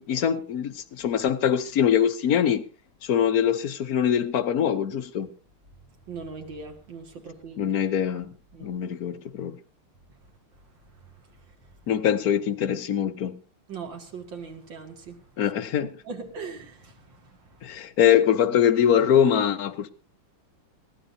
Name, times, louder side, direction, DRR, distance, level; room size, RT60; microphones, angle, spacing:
voice 1, 0.0-2.6 3.0-5.3 7.6-8.3 8.6-9.5 11.9-13.4 15.4-15.9 17.6-19.9, left 9 dB, 55° left, 1.1 m, -23 dB
voice 2, 6.1-7.7 8.5-8.7 10.6-11.7 13.7-15.3 15.8-17.7, right 5 dB, 60° right, 2.7 m, -41 dB
21.0 x 16.0 x 2.8 m
omnidirectional pair, 2.4 m